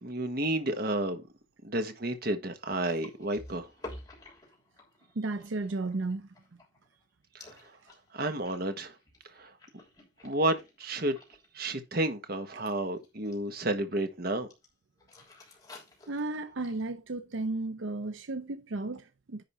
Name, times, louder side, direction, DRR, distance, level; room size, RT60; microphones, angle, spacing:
voice 1, 0.0-1.3 1.6-3.7 7.3-7.6 8.1-8.9 9.3-9.5 10.2-11.2 11.5-14.5, right 1 dB, 50° right, 1.4 m, -31 dB
sound 1, 2.7-7.0 7.4-11.5 11.7-12.0 12.6-13.6 14.5-14.7 15.0-16.9, left 2 dB, 20° left, 3.2 m, -51 dB
voice 2, 5.2-6.3 16.1-19.4, right 2 dB, 75° right, 0.7 m, -34 dB
10.5 x 3.9 x 5.7 m
head